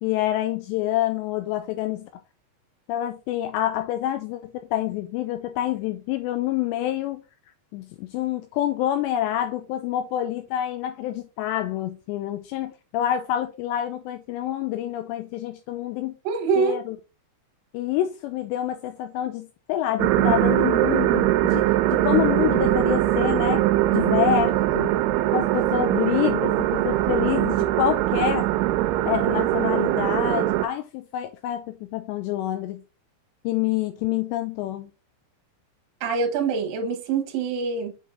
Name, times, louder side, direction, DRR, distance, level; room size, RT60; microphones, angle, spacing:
voice 1, 0.0-2.1 2.9-7.2 7.7-16.1 16.6-17.0 17.7-21.7 21.9-23.7 23.9-25.0 25.3-28.5 29.0-32.8 33.4-34.9, left 12 dB, 85° left, 2.6 m, -27 dB
voice 2, 16.2-16.8 36.0-37.9, right 5 dB, 65° right, 2.6 m, -24 dB
sound 1, 20.0-30.7, right 15 dB, 85° right, 2.8 m, -22 dB
8.1 x 4.7 x 2.5 m
omnidirectional pair, 5.2 m